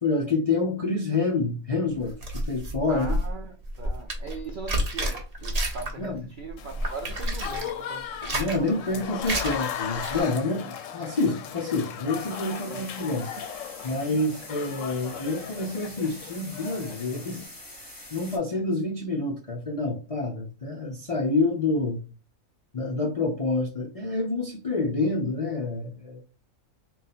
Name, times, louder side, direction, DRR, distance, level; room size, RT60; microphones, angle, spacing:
voice 1, 0.0-3.1 6.0-6.2 8.3-13.3 13.8-17.5 17.8-22.0 22.7-26.2, left 3 dB, 45° left, 0.4 m, -28 dB
sound 1, 2.0-6.1 6.4-7.7 8.1-8.7 9.2-9.6 9.9-10.2, right 1 dB, 35° right, 0.8 m, -30 dB
voice 2, 2.9-9.0 12.7-13.3 14.5-14.6 17.7-17.9, right 4 dB, 60° right, 0.5 m, -41 dB
Applause / Crowd, 6.6-17.5, left 9 dB, 75° left, 0.9 m, -37 dB
sound 2, 12.1-18.4, left 1 dB, 15° left, 1.0 m, -45 dB
3.9 x 2.4 x 4.1 m
omnidirectional pair, 1.4 m